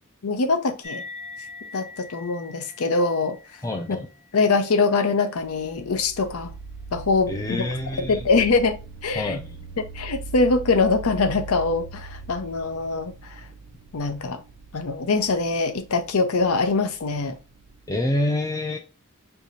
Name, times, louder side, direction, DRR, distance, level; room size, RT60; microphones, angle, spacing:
voice 1, 0.2-1.0 1.7-3.4 3.9-4.0 4.3-6.5 6.9-7.7 8.0-8.8 9.0-9.4 9.8-13.4 13.9-14.4 14.7-17.4, left 3 dB, 80° left, 0.6 m, -23 dB
sound 1, 0.8-7.7, left 3 dB, 30° left, 0.9 m, -44 dB
voice 2, 3.6-4.1 7.3-8.2 9.2-9.5 17.9-18.8, left 1 dB, 15° left, 0.4 m, -27 dB
sound 2, 5.4-18.2, right 4 dB, 50° right, 0.5 m, -41 dB
4.6 x 2.7 x 2.6 m
head